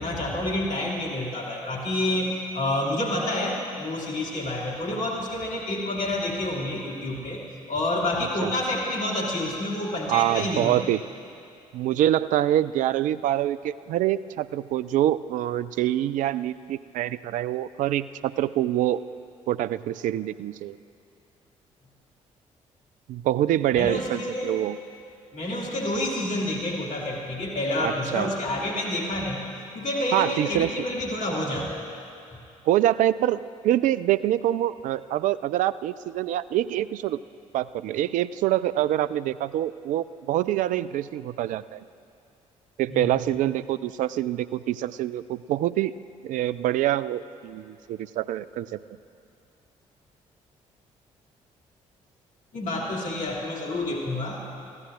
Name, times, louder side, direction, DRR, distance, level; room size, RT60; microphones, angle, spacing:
voice 1, 0.0-7.4 7.7-10.9 23.7-24.5 25.3-29.4 29.7-31.8 42.9-43.2 52.5-54.5, left 1 dB, 50° left, -2 dB, 2.4 m, -28 dB
voice 2, 10.1-11.0 11.7-19.0 19.5-20.8 23.1-24.8 27.8-28.3 30.1-30.7 32.7-37.2 37.5-41.8 42.8-45.9 46.2-48.8, right 13 dB, 50° right, 16 dB, 0.4 m, -25 dB
23.0 x 15.5 x 2.5 m, 2.8 s
figure-of-eight pair, 45°, 16 cm